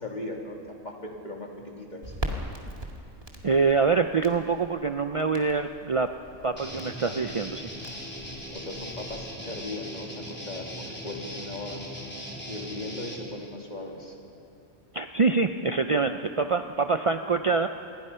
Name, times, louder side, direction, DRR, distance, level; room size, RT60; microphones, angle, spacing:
voice 1, 0.0-2.0 8.5-11.8 12.5-14.2, left 2 dB, 35° left, 0 dB, 2.8 m, -38 dB
Crackle, 2.0-9.3, equal, 25° right, 2.2 m, -41 dB
voice 2, 3.4-6.1 6.4-7.6 14.9-17.7, right 4 dB, 60° right, 7 dB, 0.3 m, -25 dB
Guitar, 6.5-13.3, equal, 5° left, 3.1 m, -39 dB
27.5 x 21.0 x 5.6 m, 2.5 s
omnidirectional pair, 1.4 m